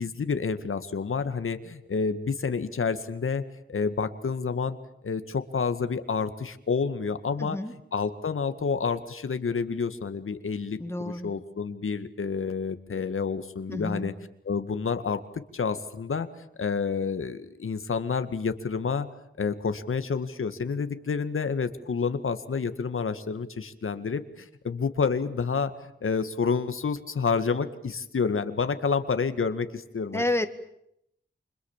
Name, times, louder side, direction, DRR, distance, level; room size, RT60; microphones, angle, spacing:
voice 1, 0.0-3.4 3.7-4.8 5.0-7.6 7.9-14.1 14.4-15.2 15.5-16.3 16.6-19.1 19.4-30.5, left 5 dB, 85° left, 10 dB, 2.0 m, -29 dB
voice 2, 7.4-7.7 10.8-11.3 13.7-14.1 30.1-30.5, left 1 dB, 10° left, 9 dB, 2.1 m, -29 dB
29.0 x 26.0 x 7.5 m, 0.76 s
wide cardioid pair, 115°, 21 cm